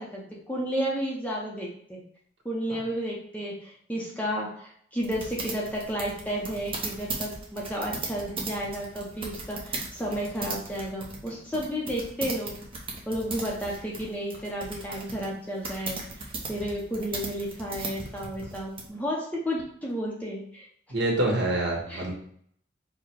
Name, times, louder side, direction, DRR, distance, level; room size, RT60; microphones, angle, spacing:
voice 1, 0.0-2.0 2.4-12.6 13.1-20.7 21.9-22.1, equal, 10° left, -4 dB, 0.7 m, -32 dB
sound 1, 5.0-18.9, right 3 dB, 30° right, 1.0 m, -37 dB
voice 2, 20.9-22.1, right 1 dB, 65° right, -1 dB, 1.6 m, -26 dB
4.8 x 2.2 x 4.6 m, 0.65 s
head